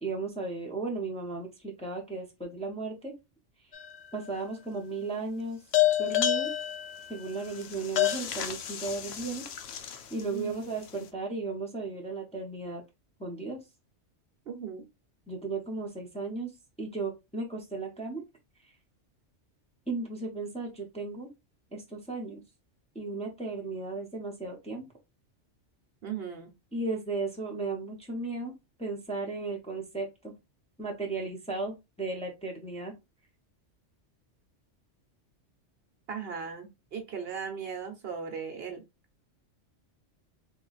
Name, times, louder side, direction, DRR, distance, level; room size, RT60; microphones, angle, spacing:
voice 1, 0.0-3.1 4.1-5.6 6.0-6.5 7.1-12.8 13.2-13.6 15.3-16.5 16.8-18.2 19.9-21.3 21.7-22.4 22.9-24.9 26.7-30.3 30.8-32.9, right 3 dB, 5° left, 0 dB, 0.8 m, -35 dB
sound 1, 3.7-4.3 5.7-10.2, left 13 dB, 65° left, 0.8 m, -29 dB
voice 2, 14.5-14.9 26.0-26.5 36.1-38.8, right 6 dB, 60° right, 5 dB, 0.9 m, -37 dB
3.2 x 2.5 x 3.9 m, 0.23 s
omnidirectional pair, 1.3 m